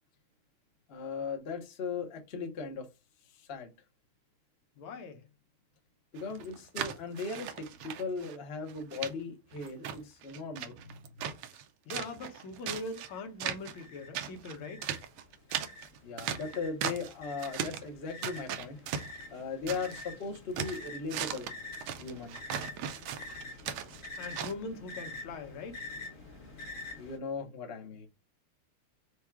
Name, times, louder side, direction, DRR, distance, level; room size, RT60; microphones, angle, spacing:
voice 1, 0.9-2.9 3.3-3.7 6.1-11.0 11.2-11.3 16.0-18.8 19.3-21.5 22.0-22.4 27.0-28.1, left 4 dB, 50° left, 0.7 m, -38 dB
voice 2, 4.8-5.2 11.9-14.9 24.2-25.8, left 3 dB, 75° left, 1.6 m, -41 dB
sound 1, 6.2-8.4 8.7-9.1 9.5-11.6 11.9-13.1 13.4-13.9 14.1-17.1 17.4-17.9 18.2-20.1 20.4-24.5, right 9 dB, 85° right, 1.5 m, -38 dB
sound 2, 13.0-13.2 13.7-14.1 14.6-27.2, left 2 dB, 30° left, 1.1 m, -47 dB
4.7 x 2.3 x 4.5 m
omnidirectional pair, 2.4 m